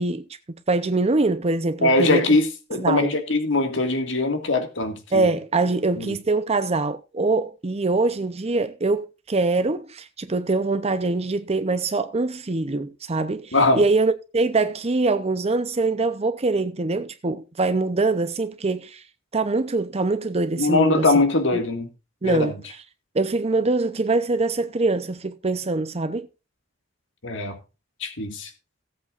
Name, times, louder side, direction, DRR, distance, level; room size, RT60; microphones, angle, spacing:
voice 1, 0.0-2.3 2.7-3.1 5.1-19.0 19.3-21.1 21.5-21.6 22.2-22.8 23.1-26.3, right 3 dB, 30° right, 0.7 m, -23 dB
voice 2, 1.8-5.3 6.0-6.1 13.5-13.8 20.6-21.9 22.2-22.5 27.2-27.6 28.0-28.5, left 2 dB, 70° left, 2.1 m, -21 dB
17.5 x 8.2 x 2.5 m
head